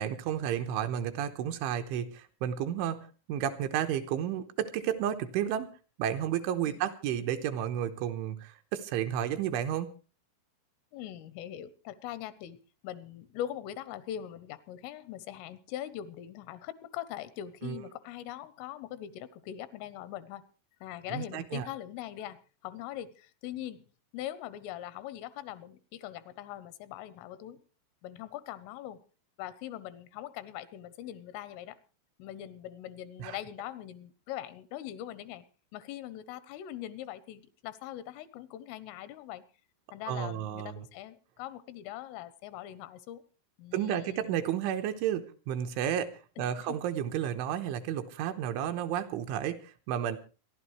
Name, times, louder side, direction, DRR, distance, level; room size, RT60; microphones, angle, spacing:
voice 1, 0.0-5.7 6.0-9.9 17.6-17.8 21.1-21.7 33.2-33.4 40.1-40.9 43.7-50.2, right 10 dB, 80° right, 7 dB, 3.3 m, -32 dB
voice 2, 10.9-12.6 12.8-20.4 20.8-23.8 24.1-27.6 28.0-29.0 29.4-31.8 32.2-35.4 35.7-39.4 39.9-43.2 43.6-44.4 46.4-46.8, left 12 dB, 85° left, 15 dB, 3.4 m, -42 dB
27.0 x 11.5 x 3.2 m, 0.35 s
omnidirectional pair, 5.7 m